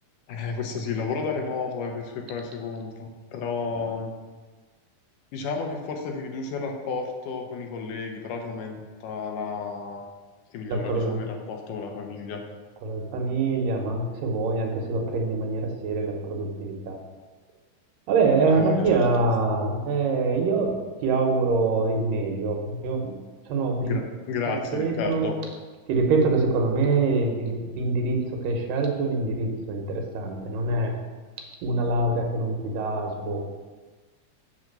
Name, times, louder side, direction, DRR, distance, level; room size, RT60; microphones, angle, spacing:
voice 1, 0.3-4.1 5.3-10.0 10.5-12.4 18.5-18.9 23.8-25.4, left 5 dB, 80° left, 3 dB, 2.2 m, -32 dB
voice 2, 10.7-11.3 12.8-17.0 18.1-23.2 23.5-24.0 24.7-25.3 25.9-28.2 28.4-30.9 31.6-33.5, right 3 dB, 85° right, 2 dB, 2.7 m, -25 dB
7.4 x 3.9 x 6.5 m, 1.3 s
omnidirectional pair, 3.9 m